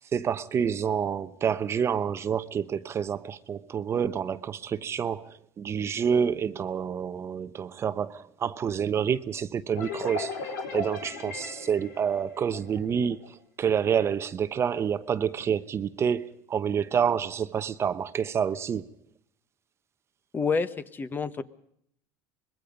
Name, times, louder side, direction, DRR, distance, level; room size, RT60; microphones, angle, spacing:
voice 1, 0.1-18.8, right 7 dB, 30° right, 0.9 m, -28 dB
sound 1, 9.8-13.3, left 4 dB, 85° left, 4.5 m, -37 dB
voice 2, 20.3-21.4, left 5 dB, 20° left, 1.2 m, -28 dB
25.0 x 21.0 x 5.2 m
supercardioid pair, 125°, 8 cm